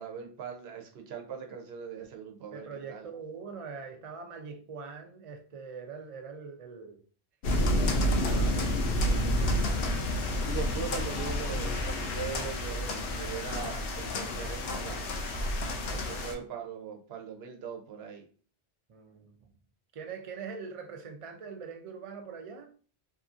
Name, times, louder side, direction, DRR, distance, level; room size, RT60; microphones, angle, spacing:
voice 1, 0.0-3.1 10.4-15.2 15.9-18.3, right 7 dB, 75° right, 3 dB, 0.9 m, -40 dB
voice 2, 2.5-7.0 7.8-9.0 15.9-16.3 18.9-19.4 19.9-22.7, right 5 dB, 50° right, 4 dB, 0.4 m, -43 dB
sound 1, 7.4-16.3, left 1 dB, 65° left, 0.7 m, -29 dB
2.7 x 2.5 x 2.4 m, 0.41 s
omnidirectional pair, 1.1 m